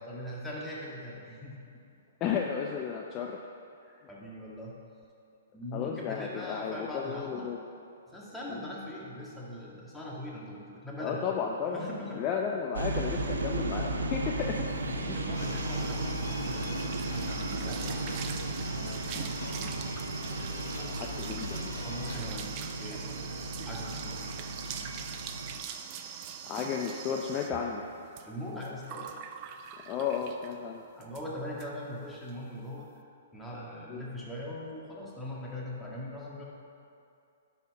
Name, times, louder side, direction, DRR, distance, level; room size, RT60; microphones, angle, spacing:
voice 1, 0.0-1.6 3.8-4.8 5.5-7.5 8.1-11.4 11.6-12.2 14.8-16.7 17.1-18.3 18.5-18.8 21.8-24.3 24.7-24.9 28.2-29.1 31.0-32.9 33.3-36.4, left 1 dB, 5° left, -5 dB, 1.8 m, -41 dB
voice 2, 2.2-3.4 5.7-7.6 8.5-8.6 11.0-11.8 12.2-14.7 15.1-15.2 20.5-21.8 26.5-27.8 29.9-30.8 33.9-34.0, left 7 dB, 30° left, 0 dB, 0.6 m, -33 dB
sound 1, 12.7-25.6, right 2 dB, 80° right, 0.8 m, -35 dB
sound 2, 14.9-30.6 31.0-31.3 31.6-31.7 32.0-32.3, right 8 dB, 40° right, 0.6 m, -43 dB
sound 3, 15.3-22.2, left 3 dB, 80° left, 0.8 m, -43 dB
10.5 x 4.3 x 5.5 m, 2.5 s
hypercardioid pair, 125°, 0 cm